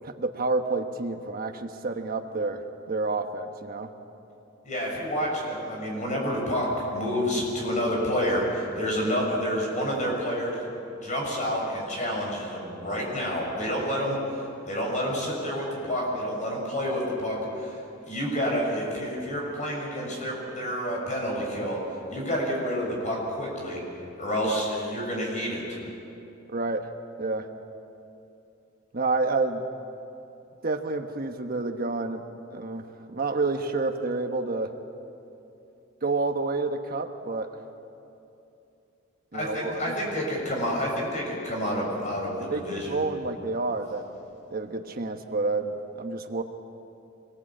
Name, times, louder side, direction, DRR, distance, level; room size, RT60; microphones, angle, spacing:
voice 1, 0.0-2.6 2.9-3.9 13.9-14.1 24.4-24.6 26.5-26.9 27.2-27.5 28.9-29.6 30.6-32.2 32.5-32.8 33.1-34.7 36.0-37.5 39.3-39.8 42.5-44.2 44.5-46.4, right 3 dB, 50° right, 6 dB, 1.2 m, -29 dB
voice 2, 4.6-10.7 11.0-17.8 18.1-21.8 22.1-23.8 24.2-25.8 39.3-43.0, equal, 40° left, -1 dB, 7.0 m, -29 dB
25.5 x 20.5 x 8.7 m, 2.8 s
head